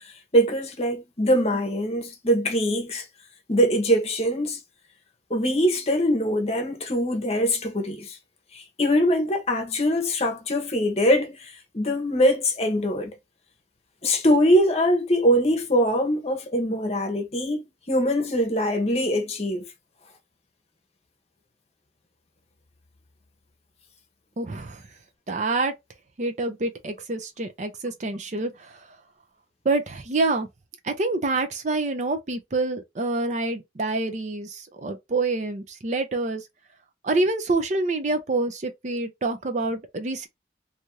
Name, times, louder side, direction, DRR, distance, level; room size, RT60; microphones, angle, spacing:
voice 1, 0.3-3.0 3.5-4.6 5.3-8.2 8.5-13.1 14.0-19.6, equal, 35° left, 0.8 m, -23 dB
voice 2, 24.4-24.8 25.3-25.7 26.2-28.9 29.6-30.5 30.8-36.4 37.0-40.3, right 2 dB, 40° right, 0.5 m, -27 dB
2.7 x 2.5 x 3.0 m
head